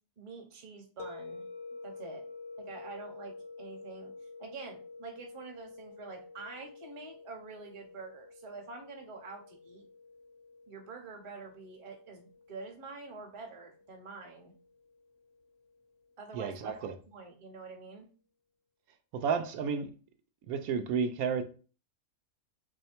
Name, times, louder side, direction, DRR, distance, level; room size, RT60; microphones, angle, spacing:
voice 1, 0.2-1.4 1.8-2.2 2.6-4.1 4.4-9.9 10.7-14.5 16.2-16.7 17.1-18.1, right 4 dB, 30° right, 0.6 m, -46 dB
sound 1, 1.0-15.9, left 3 dB, 65° left, 0.7 m, -50 dB
voice 2, 16.3-16.9 19.1-19.9 20.5-21.4, right 6 dB, 80° right, 1.0 m, -31 dB
3.2 x 2.8 x 4.3 m
omnidirectional pair, 1.5 m